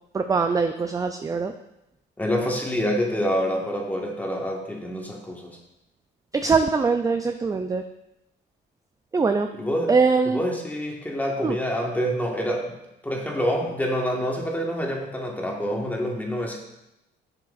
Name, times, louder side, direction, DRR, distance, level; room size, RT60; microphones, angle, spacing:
voice 1, 0.1-1.5 6.3-7.8 9.1-9.5 9.9-10.4 11.4-11.6, right 4 dB, 15° right, 7 dB, 0.3 m, -22 dB
voice 2, 2.2-5.6 9.5-9.9 10.2-12.7 13.0-16.6, equal, 10° left, -1 dB, 1.5 m, -27 dB
8.8 x 5.9 x 2.5 m, 0.88 s
cardioid pair, 90°, 20 cm